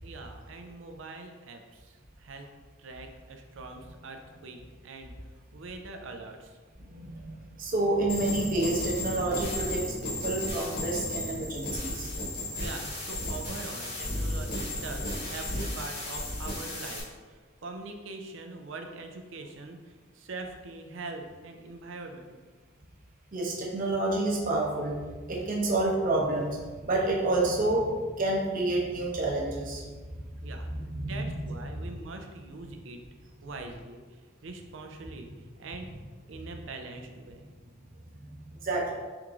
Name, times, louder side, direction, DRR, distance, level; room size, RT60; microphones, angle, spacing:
voice 1, 0.0-2.5 2.8-4.6 4.8-6.5 12.6-22.4 30.4-30.7 31.0-33.0 33.4-34.0 34.4-35.9 36.3-37.4, right 3 dB, 75° right, 5 dB, 0.5 m, -43 dB
voice 2, 6.8-12.1 23.3-24.9 25.3-27.9 28.2-29.9 30.4-31.2 31.7-31.8 38.2-38.3 38.6-38.9, right 2 dB, 45° right, -3 dB, 0.8 m, -29 dB
sound 1, 8.1-17.0, left 1 dB, 50° left, 1.4 m, -34 dB
3.6 x 3.0 x 3.6 m, 1.4 s
head